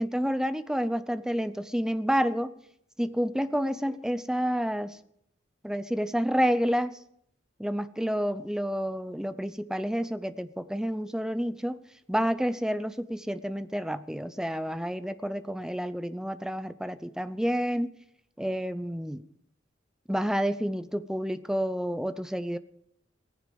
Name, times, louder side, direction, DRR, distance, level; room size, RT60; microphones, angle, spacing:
voice 1, 0.0-2.5 3.0-5.0 5.6-7.0 7.6-11.8 12.1-17.9 18.4-19.2 20.1-22.6, equal, 5° right, 12 dB, 0.7 m, -29 dB
17.0 x 15.5 x 5.3 m, 0.71 s
head